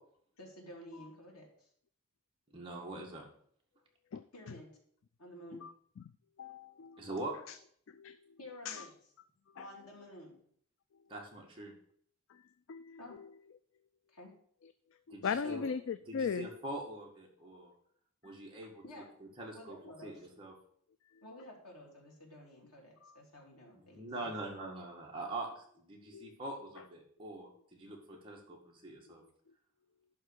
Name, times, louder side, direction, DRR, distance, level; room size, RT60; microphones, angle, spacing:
voice 1, 0.4-1.7 4.3-4.7 5.2-5.6 8.4-8.9 9.6-10.4 13.0-13.2 14.1-14.3 15.2-15.7 18.8-19.1 19.5-20.1 21.2-24.4, left 1 dB, 90° left, -2 dB, 2.9 m, -51 dB
voice 2, 2.5-3.2 7.0-7.4 11.1-11.7 15.1-15.6 16.1-17.7 18.2-19.0 19.4-20.5 23.7-29.2, right 2 dB, 25° right, -2 dB, 1.9 m, -44 dB
voice 3, 5.6-6.0 6.4-7.1 7.5-7.6 7.9-8.2 8.7-8.8 9.6-9.8 12.3-12.4 12.7-13.0 15.1-16.5 23.0-23.2 26.1-26.4, left 6 dB, 60° left, 12 dB, 0.3 m, -38 dB
11.0 x 3.8 x 6.8 m, 0.62 s
head